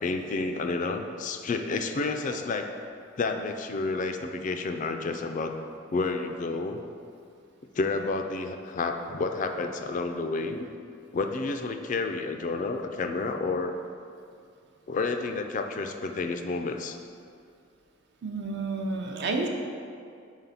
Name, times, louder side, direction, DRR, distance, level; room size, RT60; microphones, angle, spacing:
voice 1, 0.0-2.7 3.2-5.6 5.9-6.8 7.8-10.7 11.1-13.7 14.9-17.0, left 3 dB, 40° left, 6 dB, 0.3 m, -30 dB
voice 2, 18.2-19.5, right 3 dB, 60° right, 2 dB, 0.6 m, -30 dB
4.9 x 4.0 x 5.6 m, 2.4 s
head